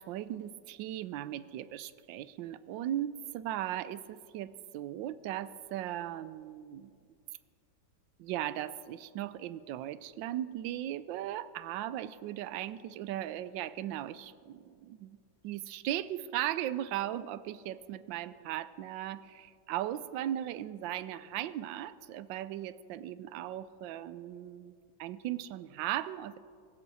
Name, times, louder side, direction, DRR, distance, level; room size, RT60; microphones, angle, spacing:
voice 1, 0.0-6.9 8.2-15.2 15.4-24.7 25.0-26.4, right 12 dB, 80° right, 16 dB, 1.3 m, -37 dB
19.5 x 16.0 x 4.1 m, 2.2 s
omnidirectional pair, 2.0 m